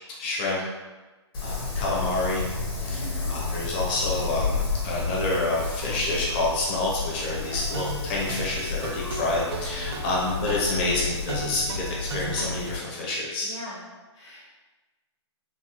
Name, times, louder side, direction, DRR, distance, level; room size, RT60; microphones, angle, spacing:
voice 1, 0.2-0.6 1.4-2.5 2.8-3.0 3.3-4.6 4.8-13.5, left 2 dB, 20° left, -4 dB, 0.5 m, -28 dB
Wind, 1.3-12.8, left 4 dB, 50° left, 0.9 m, -31 dB
voice 2, 2.8-3.7 13.4-13.8 14.1-14.4, equal, 75° left, -5 dB, 1.4 m, -42 dB
sound 1, 7.5-12.5, right 3 dB, 55° right, 0.4 m, -37 dB
4.0 x 2.0 x 2.8 m, 1.2 s
hypercardioid pair, 170°, 15 cm